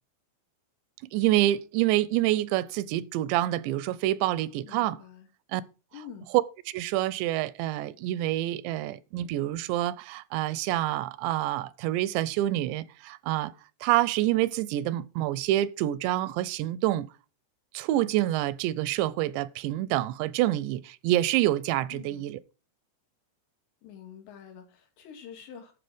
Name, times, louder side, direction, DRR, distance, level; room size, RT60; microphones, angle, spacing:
voice 1, 1.1-5.0 5.5-5.6 6.7-13.5 13.8-17.1 17.7-22.4, right 14 dB, 85° right, 2.9 m, -27 dB
voice 2, 4.6-5.3 5.9-6.3 21.9-22.3 23.8-25.7, left 8 dB, 80° left, 4.6 m, -46 dB
12.0 x 7.5 x 5.1 m
omnidirectional pair, 5.0 m